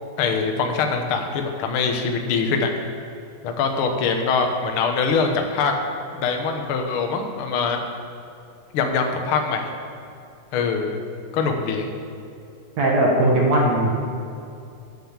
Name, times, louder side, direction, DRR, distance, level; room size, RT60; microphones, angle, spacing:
voice 1, 0.2-2.7 3.4-5.7 6.1-7.8 8.7-9.7 10.5-11.0 11.3-11.9, left 5 dB, 60° left, 4 dB, 1.5 m, -23 dB
voice 2, 12.8-13.9, right 1 dB, 65° right, -2 dB, 2.4 m, -18 dB
9.6 x 9.1 x 7.3 m, 2.6 s
omnidirectional pair, 3.6 m